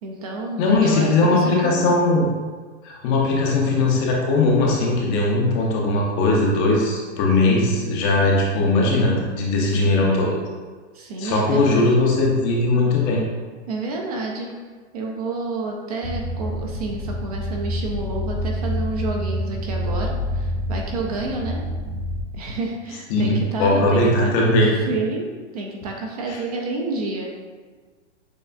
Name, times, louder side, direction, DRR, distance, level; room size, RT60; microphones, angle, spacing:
voice 1, 0.0-1.9 9.6-10.3 10.9-12.0 13.7-14.5 14.9-21.7 22.3-24.5 24.8-27.3, right 2 dB, 35° right, 0 dB, 0.4 m, -29 dB
voice 2, 0.6-2.3 2.8-10.3 11.2-13.2 23.1-24.7 26.3-26.4, left 2 dB, 25° left, -2 dB, 0.5 m, -19 dB
sound 1, 16.0-22.2, equal, 45° left, 0.9 m, -27 dB
6.7 x 2.3 x 2.4 m, 1.5 s
hypercardioid pair, 140°, 36 cm